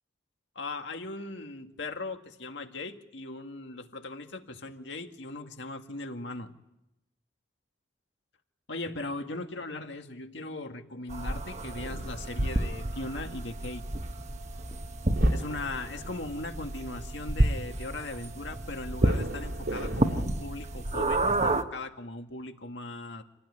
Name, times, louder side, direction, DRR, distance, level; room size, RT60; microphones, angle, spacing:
voice 1, 0.6-6.5 8.7-13.8 15.3-23.2, left 2 dB, 75° left, 5 dB, 1.9 m, -39 dB
sound 1, 11.1-21.6, right 1 dB, 35° right, 1.2 m, -30 dB
sound 2, 11.2-20.3, right 1 dB, 70° right, 3.0 m, -42 dB
27.5 x 18.5 x 9.7 m, 0.91 s
head